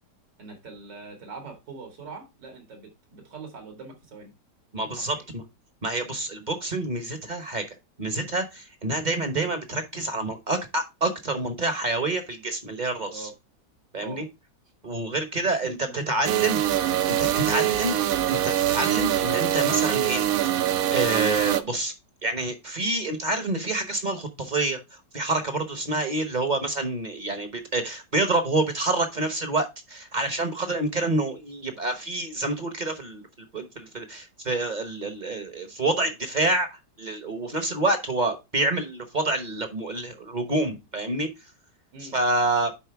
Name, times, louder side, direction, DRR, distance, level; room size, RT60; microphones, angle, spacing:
voice 1, 0.4-4.3 5.0-5.2 13.0-13.3 14.0-14.3 15.6-16.5 41.9-42.2, right 4 dB, 85° right, 4 dB, 2.9 m, -43 dB
voice 2, 4.7-5.4 5.8-7.6 8.0-13.3 13.9-14.2 14.8-18.0 18.3-21.9 22.2-41.3 42.0-42.7, right 2 dB, 35° right, 8 dB, 0.9 m, -28 dB
sound 1, 16.2-21.6, right 12 dB, 65° right, 1.0 m, -24 dB
10.5 x 4.4 x 3.4 m, 0.24 s
omnidirectional pair, 1.9 m